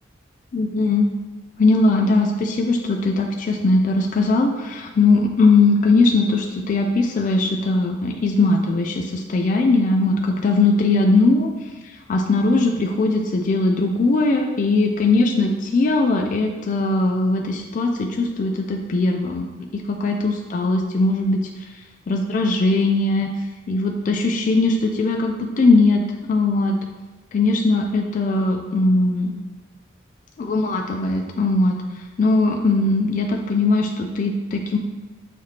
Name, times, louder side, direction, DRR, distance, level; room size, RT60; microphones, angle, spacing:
voice 1, 0.5-1.1 1.6-11.5 11.8-21.5 22.1-23.3 23.7-26.0 26.3-26.8 27.3-29.3 30.4-34.8, left 3 dB, 45° left, 2 dB, 0.3 m, -20 dB
5.7 x 3.1 x 2.8 m, 1.2 s
head